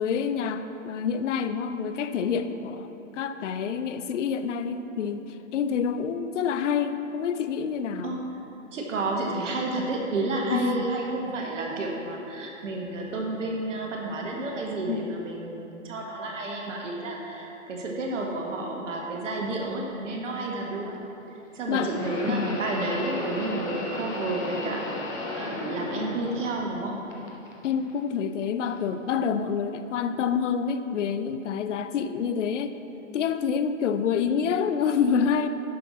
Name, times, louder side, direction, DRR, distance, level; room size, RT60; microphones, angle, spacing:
voice 1, 0.0-2.9 3.1-5.2 5.5-8.2 10.5-10.9 14.9-15.1 21.7-21.9 22.3-22.6 27.6-32.7 33.1-35.5, left 7 dB, 65° left, 10 dB, 0.7 m, -27 dB
voice 2, 8.7-21.0 21.5-24.8 25.3-27.0, right 2 dB, 70° right, 0 dB, 1.5 m, -31 dB
sound 1, 19.6-19.7 21.7-26.8 27.1-27.9 28.7-28.8 29.8-29.9, left 2 dB, 10° left, 0.3 m, -35 dB
10.5 x 6.5 x 4.2 m, 2.9 s
hypercardioid pair, 120°, 39 cm